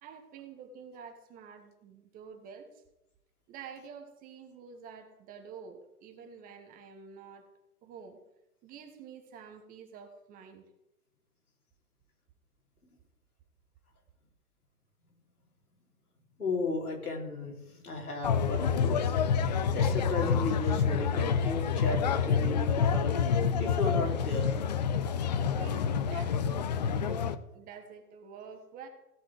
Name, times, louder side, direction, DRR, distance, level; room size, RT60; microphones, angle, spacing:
voice 1, 0.0-2.8 3.5-7.5 7.8-8.2 8.6-10.6 25.5-27.1 27.5-28.9, right 6 dB, 20° right, 5 dB, 1.2 m, -48 dB
voice 2, 16.4-23.2 23.6-24.5, left 3 dB, 70° left, 0 dB, 4.1 m, -35 dB
sound 1, 18.2-27.4, left 6 dB, 30° left, 0.6 m, -28 dB
16.5 x 5.8 x 7.8 m, 0.90 s
figure-of-eight pair, 120°, 46 cm